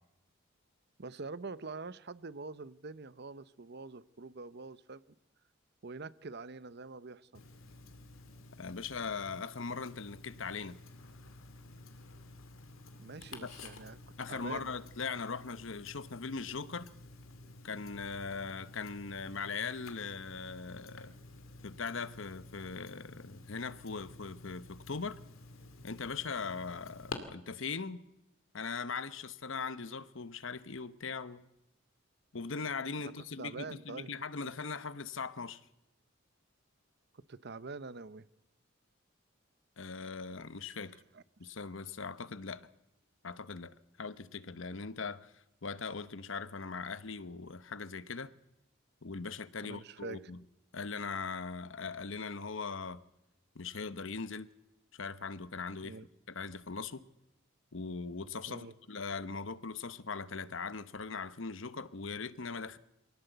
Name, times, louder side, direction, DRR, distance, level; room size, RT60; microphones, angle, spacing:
voice 1, 1.0-5.0 5.8-7.4 13.0-14.0 14.3-14.7 33.0-33.1 33.4-34.1 37.1-38.3 41.1-41.2 49.6-50.3 55.8-56.1 58.5-58.7, right 3 dB, 55° right, 0.8 m, -45 dB
Tick-tock, 7.3-27.1, left 2 dB, 85° left, 2.4 m, -51 dB
voice 2, 8.6-10.8 13.4-13.5 14.2-16.9 17.6-21.1 21.6-25.2 25.8-28.0 28.5-31.4 32.3-35.6 39.8-41.0 41.4-42.7 43.2-48.3 49.0-50.4 50.7-53.0 53.5-54.5 54.9-56.0 56.3-57.1 57.7-62.8, left 4 dB, 70° left, 1.0 m, -40 dB
23.5 x 17.5 x 8.1 m
head